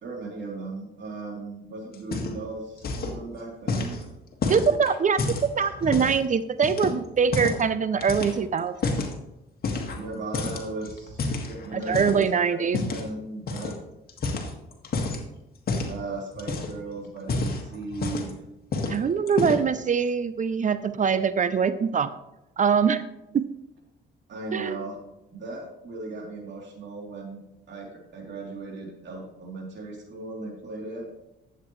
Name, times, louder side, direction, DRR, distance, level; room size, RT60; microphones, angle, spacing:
voice 1, 0.0-4.1 9.9-12.2 12.5-12.6 12.9-13.8 15.8-18.3 24.3-25.0 25.3-27.4 27.7-31.1, right 3 dB, 65° right, -1 dB, 3.2 m, -37 dB
sound 1, 1.9-2.5 2.8-3.2 3.7-6.2 6.6-7.7 8.0-9.1 9.6-10.1 10.3-12.2 12.7-13.1 13.5-13.7 14.1-15.2 15.7-16.0 16.3-16.8 17.2-18.4 18.7-19.0 19.3-19.7, left 3 dB, 50° left, 1.9 m, -29 dB
voice 2, 4.5-5.2 5.6-9.1 11.7-12.8 18.9-22.1 22.6-23.1 23.3-23.4 24.5-24.8, right 6 dB, 40° right, 13 dB, 0.5 m, -23 dB
12.0 x 8.1 x 3.2 m, 0.93 s
cardioid pair, 90°, 20 cm